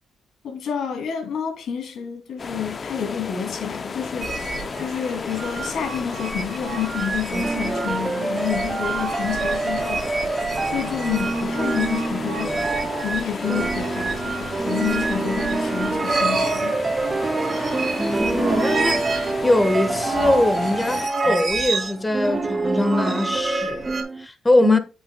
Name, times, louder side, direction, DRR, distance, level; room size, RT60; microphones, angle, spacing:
voice 1, 0.4-4.4 4.8-10.1 10.7-12.6 13.0-16.8 24.6-24.8, left 9 dB, 70° left, 2.6 m, -29 dB
sound 1, 2.4-21.1, left 5 dB, 40° left, 0.5 m, -33 dB
sound 2, 4.2-24.0, right 3 dB, 45° right, 2.7 m, -29 dB
sound 3, 7.3-24.3, right 3 dB, 25° right, 0.5 m, -27 dB
voice 2, 18.0-24.8, left 1 dB, 15° left, 1.3 m, -22 dB
9.0 x 7.6 x 2.2 m
cardioid pair, 90°, 0 cm